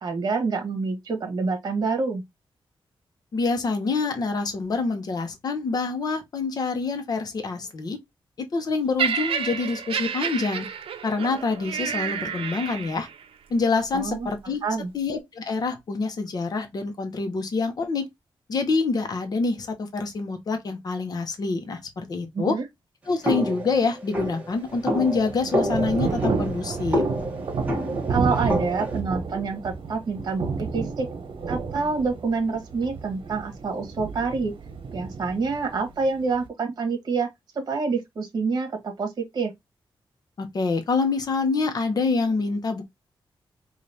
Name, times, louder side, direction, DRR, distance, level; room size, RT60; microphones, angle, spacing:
voice 1, 0.0-2.2 13.9-14.3 14.6-14.9 22.3-22.6 28.1-31.1 31.5-34.5 34.9-37.3 37.7-39.5, right 4 dB, 45° right, 1.3 m, -27 dB
voice 2, 3.3-8.0 8.4-10.7 11.0-13.1 13.5-14.6 14.9-18.1 18.5-22.5 23.1-27.1 40.4-42.8, left 4 dB, 45° left, 0.8 m, -26 dB
Laughter, 9.0-13.2 14.0-14.2, right 7 dB, 85° right, 0.5 m, -30 dB
sound 1, 23.2-29.0, equal, 15° right, 1.2 m, -28 dB
Thunder / Rain, 24.5-36.5, right 4 dB, 70° right, 0.9 m, -31 dB
5.0 x 2.5 x 2.8 m
wide cardioid pair, 175°, 9 cm